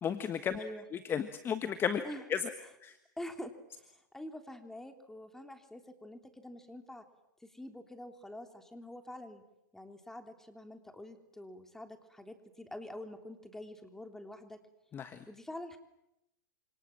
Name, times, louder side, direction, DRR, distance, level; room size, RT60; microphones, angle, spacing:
voice 1, 0.0-0.6 0.9-2.0 2.3-2.5 2.8-3.0 14.9-15.2, left 8 dB, 20° left, 10 dB, 1.5 m, -33 dB
voice 2, 0.5-0.8 2.0-2.2 3.2-7.0 7.4-9.4 9.7-14.6 15.3-15.8, left 1 dB, 5° left, 6 dB, 3.5 m, -46 dB
28.0 x 27.5 x 7.5 m, 0.87 s
hypercardioid pair, 120°, 10 cm